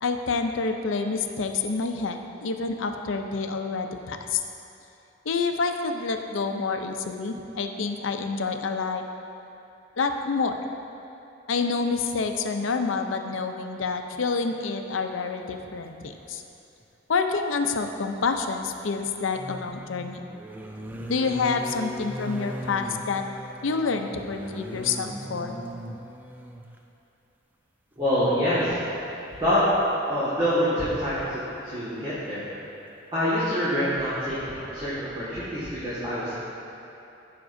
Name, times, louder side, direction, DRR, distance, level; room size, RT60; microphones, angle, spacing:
voice 1, 0.0-4.4 5.3-9.0 10.0-10.5 11.5-16.4 17.1-20.2 21.1-23.2 23.6-25.6, left 4 dB, 85° left, 5 dB, 0.6 m, -28 dB
sound 1, 16.8-16.9 19.1-26.8 28.0-28.1 28.4-28.6, equal, 10° right, 0.4 m, -38 dB
voice 2, 28.0-28.7 29.4-29.6 30.1-32.5 33.1-36.4, equal, 25° right, -12 dB, 1.7 m, -26 dB
14.0 x 5.9 x 2.6 m, 2.8 s
head